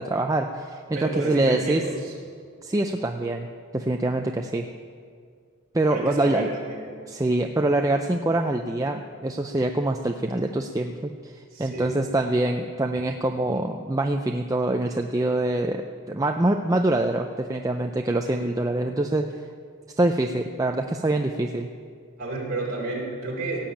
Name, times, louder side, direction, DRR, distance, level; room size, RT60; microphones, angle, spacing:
voice 1, 0.0-1.8 2.6-3.5 3.7-4.7 5.7-6.5 7.1-19.3 20.0-21.7, right 2 dB, 15° right, 4 dB, 0.4 m, -25 dB
voice 2, 0.9-2.1 5.9-6.9 11.5-11.9 22.2-23.7, right 2 dB, 40° right, -3 dB, 3.9 m, -31 dB
17.5 x 7.2 x 8.6 m, 2.1 s
head